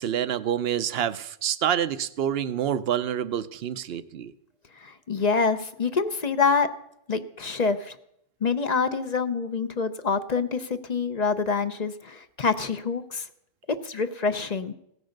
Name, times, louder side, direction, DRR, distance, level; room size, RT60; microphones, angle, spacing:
voice 1, 0.0-4.3, right 9 dB, 70° right, 14 dB, 0.9 m, -27 dB
voice 2, 4.8-6.7 7.1-8.0 8.4-13.2 13.8-14.7, left 5 dB, 45° left, 10 dB, 0.8 m, -26 dB
16.5 x 9.6 x 6.5 m, 0.74 s
omnidirectional pair, 1.1 m